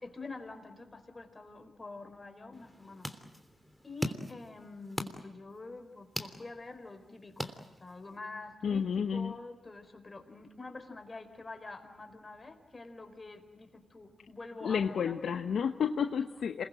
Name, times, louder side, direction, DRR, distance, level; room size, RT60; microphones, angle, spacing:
voice 1, 0.0-3.1 3.8-15.1 16.2-16.3, left 3 dB, 35° left, 7 dB, 4.6 m, -47 dB
sound 1, 2.5-8.2, equal, ahead, 3.2 m, -42 dB
voice 2, 8.6-9.3 14.6-16.6, left 7 dB, 70° left, 7 dB, 0.9 m, -31 dB
27.5 x 21.5 x 7.7 m, 1.1 s
supercardioid pair, 40°, 0 cm